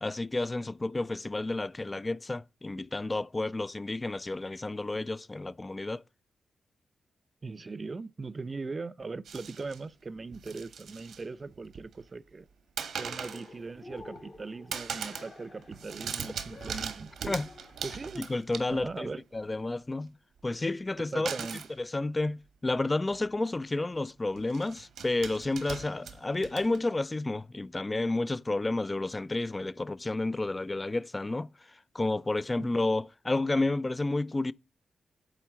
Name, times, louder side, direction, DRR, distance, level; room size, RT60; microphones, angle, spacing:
voice 1, 0.0-6.0 17.3-17.5 18.2-19.1 19.3-20.1 20.4-21.3 21.8-31.5 31.9-34.5, left 2 dB, 30° left, 0.3 m, -31 dB
voice 2, 7.4-12.5 13.0-17.4 17.8-18.3 18.7-19.2 21.1-21.6 32.6-32.7, right 3 dB, 40° right, 0.4 m, -40 dB
sound 1, 9.2-9.8 10.3-11.2 11.5-12.1 12.8-13.5 13.9-14.4 14.7-15.3 15.6-19.0 21.3-21.7 22.7-22.8 23.1-23.3 24.4-27.0, right 7 dB, 80° right, 1.1 m, -40 dB
Cheering, 13.0-18.0, left 3 dB, 50° left, 1.4 m, -51 dB
9.0 x 3.6 x 7.0 m
cardioid pair, 55°, 0 cm